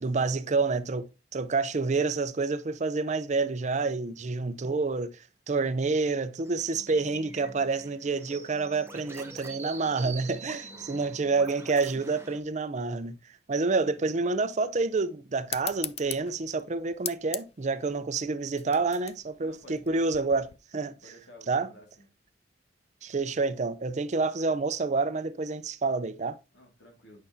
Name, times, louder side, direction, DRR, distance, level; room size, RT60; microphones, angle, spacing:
voice 1, 0.0-13.2 13.5-20.5 20.7-20.9 21.5-21.7 23.0-26.4, right 4 dB, 40° right, 0.5 m, -28 dB
sound 1, 6.4-12.4, right 3 dB, 15° right, 0.9 m, -45 dB
voice 2, 10.6-11.0 19.4-20.0 21.0-22.1 26.5-27.3, left 1 dB, 70° left, 2.1 m, -53 dB
sound 2, 15.5-20.6, left 11 dB, 35° left, 0.4 m, -40 dB
8.6 x 5.6 x 2.7 m
head